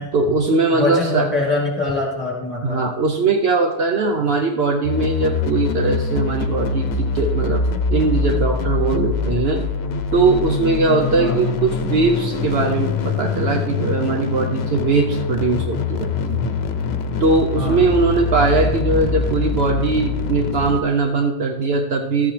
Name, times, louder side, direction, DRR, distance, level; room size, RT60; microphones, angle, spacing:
voice 1, 0.1-1.3 2.6-7.6 7.9-9.6 10.1-16.5 17.2-22.3, right 3 dB, 65° right, 3 dB, 0.9 m, -20 dB
voice 2, 0.8-2.8 11.1-11.3 17.6-17.8, left 3 dB, 10° left, -4 dB, 2.7 m, -23 dB
sound 1, 4.8-20.8, left 5 dB, 65° left, 0.9 m, -24 dB
13.0 x 8.7 x 3.3 m, 1.0 s
omnidirectional pair, 1.2 m